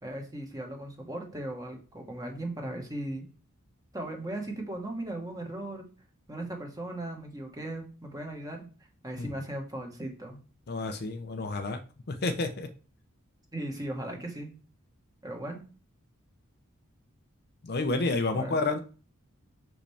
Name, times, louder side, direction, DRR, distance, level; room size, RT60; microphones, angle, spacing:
voice 1, 0.0-3.3 3.9-5.9 6.3-8.7 9.0-10.4 13.5-14.5 15.2-15.6 18.3-18.6, right 1 dB, 15° right, 2 dB, 1.4 m, -37 dB
voice 2, 10.7-11.8 12.1-12.7 17.6-18.8, left 3 dB, 50° left, 7 dB, 0.7 m, -30 dB
5.9 x 5.0 x 3.4 m, 0.36 s
head